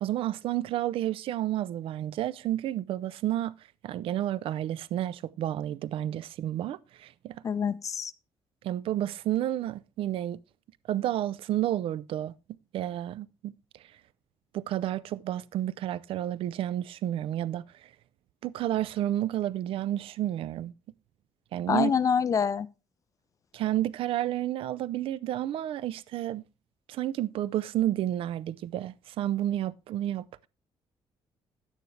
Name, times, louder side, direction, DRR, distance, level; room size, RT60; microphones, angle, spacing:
voice 1, 0.0-3.5 3.8-7.4 8.6-10.4 10.9-12.3 12.7-13.5 14.5-17.6 18.4-20.7 21.5-21.9 23.5-26.4 26.9-30.3, right 12 dB, 75° right, 0.5 m, -30 dB
voice 2, 7.4-8.1 21.7-22.7, left 7 dB, 35° left, 0.5 m, -26 dB
10.5 x 9.3 x 3.3 m
cardioid pair, 140°, 9 cm